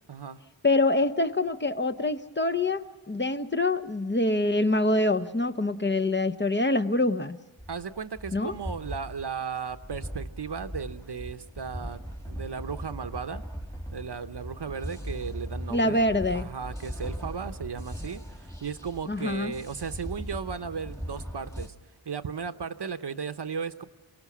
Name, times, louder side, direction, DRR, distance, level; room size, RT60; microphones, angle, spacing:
voice 1, 0.1-0.4 7.7-13.4 13.9-21.7 22.1-23.8, right 6 dB, 60° right, 0.9 m, -36 dB
voice 2, 0.6-7.4 8.3-8.6 15.7-16.5 19.1-19.5, left 2 dB, 25° left, 0.7 m, -25 dB
sound 1, 7.6-21.7, equal, 5° left, 1.7 m, -39 dB
28.0 x 18.5 x 6.1 m
wide cardioid pair, 80°, 46 cm